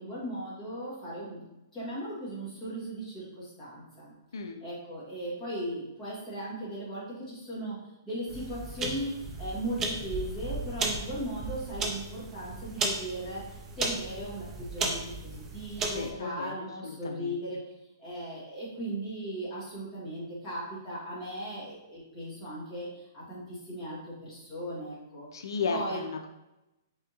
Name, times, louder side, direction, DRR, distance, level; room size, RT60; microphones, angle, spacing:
voice 1, 0.0-1.5 1.7-4.1 4.6-7.8 8.0-13.4 13.8-17.6 18.0-26.0, right 1 dB, 10° left, -10 dB, 1.5 m, -37 dB
sound 1, 8.3-16.1, right 3 dB, 10° right, 0.4 m, -35 dB
voice 2, 15.9-17.4 25.3-26.3, left 5 dB, 85° left, 5 dB, 0.4 m, -35 dB
4.2 x 3.5 x 2.9 m, 0.94 s
hypercardioid pair, 175°, 2 cm